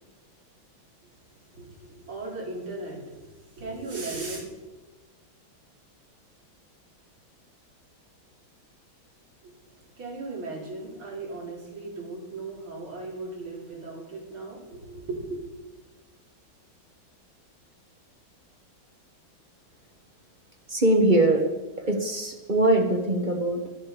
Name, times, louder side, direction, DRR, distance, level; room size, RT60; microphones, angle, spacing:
voice 1, 1.5-4.4 9.4-15.5, right 3 dB, 85° right, -3 dB, 4.4 m, -37 dB
voice 2, 20.7-21.5 21.8-23.6, right 2 dB, 30° right, 4 dB, 1.1 m, -22 dB
13.0 x 11.5 x 5.2 m, 1.2 s
omnidirectional pair, 2.2 m